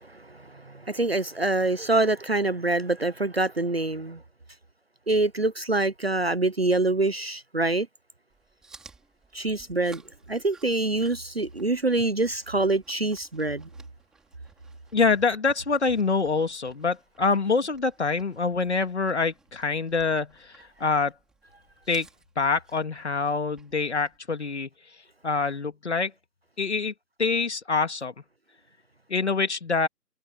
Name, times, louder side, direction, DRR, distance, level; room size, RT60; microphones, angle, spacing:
voice 1, 0.0-4.2 5.1-7.9 9.3-10.0 10.3-13.7, right 2 dB, 40° right, 1.0 m, -25 dB
Chewing mastication, 8.3-24.2, right 4 dB, ahead, 3.4 m, -57 dB
voice 2, 14.9-21.1 21.9-22.1 22.4-24.7 25.2-26.1 26.6-26.9 27.2-28.1 29.1-29.9, left 4 dB, 45° left, 2.7 m, -25 dB
figure-of-eight pair, 175°, 48 cm